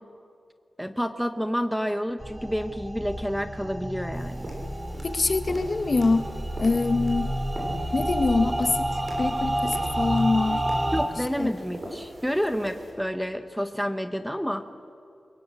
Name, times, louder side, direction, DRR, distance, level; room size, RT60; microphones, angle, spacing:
voice 1, 0.8-4.5 10.9-14.6, equal, ahead, 8 dB, 1.1 m, -29 dB
sound 1, 2.2-11.0, right 1 dB, 25° right, 3.3 m, -30 dB
sound 2, 4.1-12.9, right 1 dB, 40° right, 7.2 m, -43 dB
voice 2, 5.0-6.3 6.6-7.3 7.9-10.6 11.4-11.5, left 3 dB, 45° left, 9 dB, 1.4 m, -24 dB
27.0 x 22.5 x 8.4 m, 2.6 s
wide cardioid pair, 115°, 0 cm